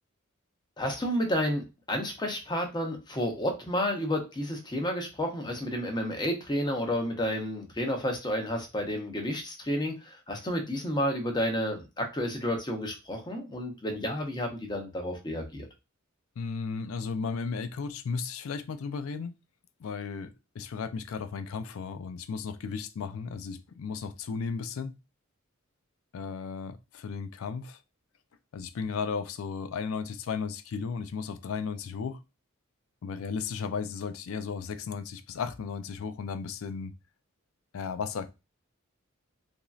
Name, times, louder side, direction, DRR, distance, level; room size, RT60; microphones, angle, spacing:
voice 1, 0.8-15.7, equal, 20° left, 0.6 m, -31 dB
voice 2, 16.4-19.3 19.8-25.0 26.1-27.8 28.5-32.2 33.0-36.9 37.7-38.3, left 5 dB, 80° left, 0.4 m, -35 dB
3.0 x 2.6 x 2.3 m
head